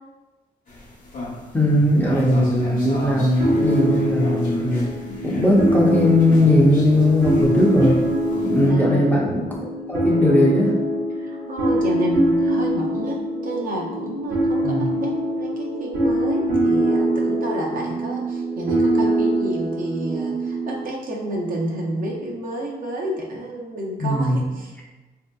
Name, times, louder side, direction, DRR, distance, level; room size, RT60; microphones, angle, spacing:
sound 1, 0.7-8.7, left 1 dB, 50° left, 0.8 m, -34 dB
voice 1, 1.5-4.9 5.2-8.0 8.4-9.5 9.9-10.7 14.6-14.9 24.0-24.5, left 1 dB, 10° left, -4 dB, 0.5 m, -18 dB
sound 2, 3.4-20.8, right 1 dB, 85° right, 1.1 m, -23 dB
voice 2, 8.6-9.2 11.2-24.9, right 1 dB, 55° right, -2 dB, 0.7 m, -30 dB
3.2 x 2.7 x 2.2 m, 1.1 s
wide cardioid pair, 130°, 17 cm